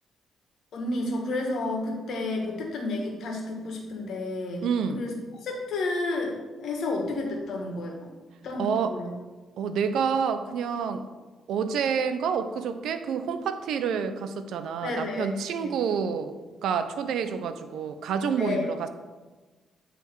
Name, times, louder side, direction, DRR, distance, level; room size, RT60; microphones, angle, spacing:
voice 1, 0.7-4.7 4.9-5.1 5.4-8.1 8.4-9.1 14.8-15.3 15.6-15.7 18.4-18.6, left 2 dB, 65° left, 0 dB, 1.6 m, -31 dB
voice 2, 4.6-5.0 8.6-8.9 9.6-11.1 11.5-16.3 16.6-18.9, right 6 dB, 75° right, 10 dB, 0.5 m, -28 dB
9.0 x 3.4 x 4.6 m, 1.3 s
cardioid pair, 90°, 0 cm